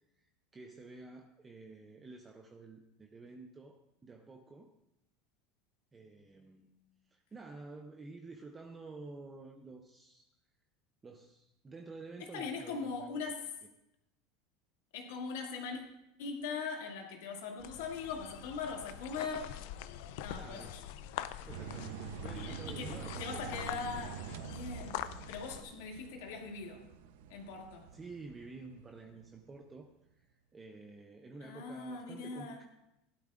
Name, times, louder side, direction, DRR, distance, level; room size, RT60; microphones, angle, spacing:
voice 1, 0.2-4.7 5.9-6.7 7.1-10.3 11.0-13.3 20.4-20.9 21.5-23.4 27.9-32.6, right 3 dB, 15° right, 4 dB, 0.6 m, -50 dB
voice 2, 12.3-13.5 14.9-15.8 16.2-19.5 20.2-20.8 22.3-22.9 23.2-25.0 25.3-26.8 27.3-27.9 31.4-32.6, left 5 dB, 80° left, 1 dB, 2.2 m, -41 dB
sound 1, 17.6-25.6, left 12 dB, 65° left, 0.5 m, -44 dB
sound 2, 21.5-29.6, right 9 dB, 80° right, 0.7 m, -46 dB
16.0 x 12.0 x 2.5 m, 0.89 s
supercardioid pair, 165°, 0 cm